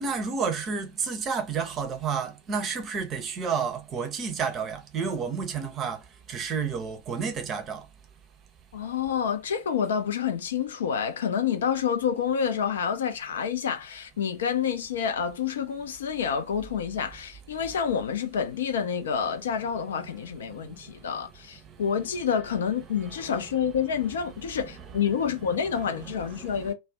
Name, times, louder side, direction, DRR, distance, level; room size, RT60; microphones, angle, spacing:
voice 1, 0.0-6.0 6.3-7.8 22.3-22.4 23.0-26.7, right 6 dB, 30° right, 0.6 m, -32 dB
voice 2, 8.7-26.7, left 7 dB, 65° left, 0.5 m, -28 dB
2.4 x 2.1 x 3.4 m
figure-of-eight pair, 90°, 0 cm